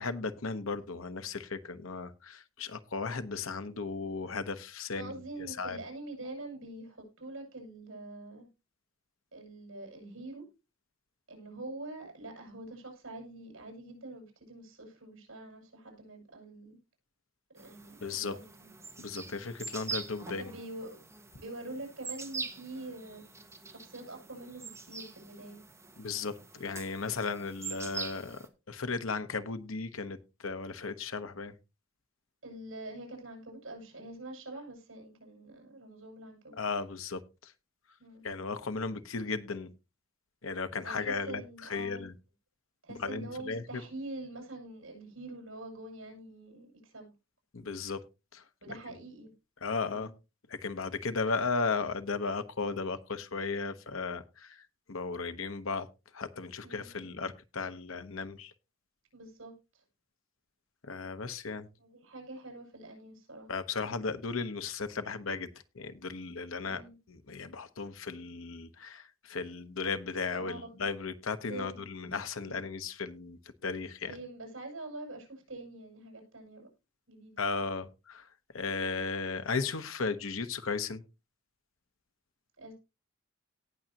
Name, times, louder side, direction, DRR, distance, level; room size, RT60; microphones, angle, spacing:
voice 1, 0.0-5.1 5.4-5.8 18.0-18.4 19.0-20.4 26.0-31.5 36.6-37.5 38.2-39.7 40.4-41.4 41.7-42.1 42.9-43.8 47.5-48.0 48.3-48.4 49.6-50.1 50.5-55.9 56.1-58.5 60.8-61.7 63.5-65.5 65.7-66.8 67.1-74.1 77.4-78.3 78.5-81.0, left 4 dB, 75° left, 10 dB, 1.0 m, -35 dB
voice 2, 4.9-8.5 9.3-10.4 11.3-16.8 17.5-18.7 20.2-21.0 21.4-23.2 23.7-25.6 32.4-36.6 38.0-38.2 40.8-42.1 42.8-47.1 48.6-49.3 49.9-50.1 56.6-57.1 59.1-59.5 61.8-63.5 66.6-67.0 70.3-70.9 71.5-71.9 72.4-72.6 74.1-76.7 77.1-77.3 82.6-82.7, right 2 dB, 80° right, 2 dB, 6.3 m, -45 dB
sound 1, 17.6-28.5, right 4 dB, 15° right, 1.4 m, -44 dB
18.0 x 6.4 x 2.9 m, 0.27 s
head